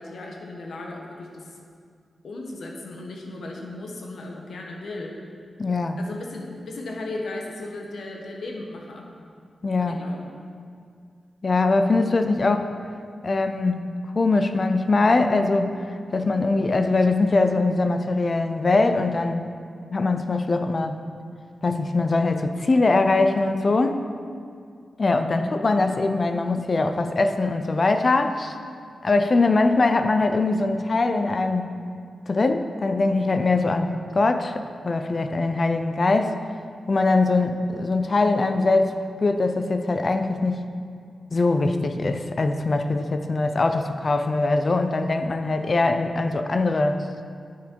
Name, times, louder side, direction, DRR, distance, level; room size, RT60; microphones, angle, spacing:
voice 1, 0.0-1.6 2.2-5.2 6.0-9.1 9.8-10.4 25.2-25.5, left 2 dB, 70° left, 0 dB, 1.2 m, -36 dB
voice 2, 5.6-6.0 9.6-10.0 11.4-12.7 13.2-13.8 14.1-15.8 16.1-19.5 19.9-21.0 21.6-24.0 25.0-28.6 29.0-31.7 32.3-36.4 36.9-38.9 39.2-40.6 41.3-47.0, left 3 dB, 35° left, 8 dB, 0.4 m, -22 dB
10.5 x 7.4 x 4.5 m, 2.3 s
wide cardioid pair, 175°, 0 cm